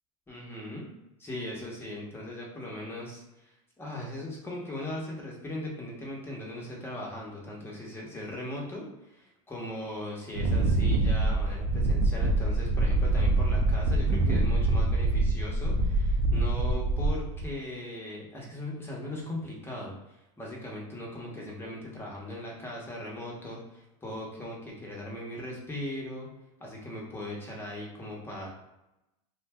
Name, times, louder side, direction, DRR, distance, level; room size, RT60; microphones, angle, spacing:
voice 1, 0.3-0.8 1.2-3.5 3.8-26.3 26.6-28.5, left 1 dB, 15° left, -3 dB, 1.0 m, -39 dB
Wind, 10.3-17.5, right 2 dB, 70° right, 0.5 m, -25 dB
2.5 x 2.2 x 3.3 m, 0.92 s
supercardioid pair, 110°, 18 cm